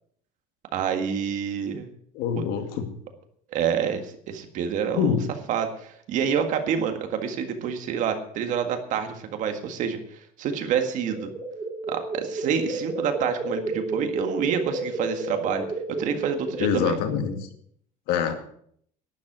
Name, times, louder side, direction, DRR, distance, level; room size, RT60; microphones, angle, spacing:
voice 1, 0.7-1.9 2.4-2.5 3.5-5.1 5.5-11.3 11.9-17.0, right 7 dB, 50° right, 6 dB, 1.8 m, -28 dB
voice 2, 2.1-2.9 5.0-5.2 16.6-17.5 18.1-18.4, left 7 dB, 65° left, 6 dB, 2.1 m, -25 dB
sound 1, 10.6-17.3, right 2 dB, 25° right, 2.5 m, -32 dB
11.5 x 11.0 x 6.1 m, 0.64 s
cardioid pair, 150°, 17 cm